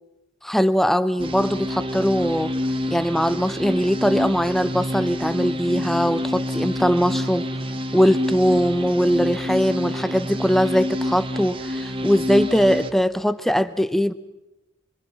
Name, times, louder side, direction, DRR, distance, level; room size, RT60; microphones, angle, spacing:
voice 1, 0.4-2.5 2.9-7.4 7.9-14.1, equal, ahead, 14 dB, 0.7 m, -21 dB
sound 1, 1.2-12.9, left 1 dB, 25° right, 1.2 m, -28 dB
25.5 x 25.0 x 6.0 m, 0.96 s
head